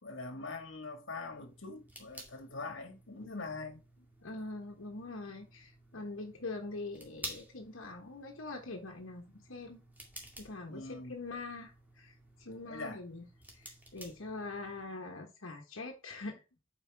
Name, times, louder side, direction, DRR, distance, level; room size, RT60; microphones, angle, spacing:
voice 1, 0.0-3.8 10.7-11.2 12.7-13.0, left 3 dB, 70° left, 1.8 m, -43 dB
sound 1, 1.3-14.8, right 1 dB, 10° right, 2.1 m, -52 dB
voice 2, 4.2-9.8 10.4-13.3 13.5-16.4, left 3 dB, 90° left, 1.3 m, -43 dB
8.5 x 5.0 x 3.5 m
head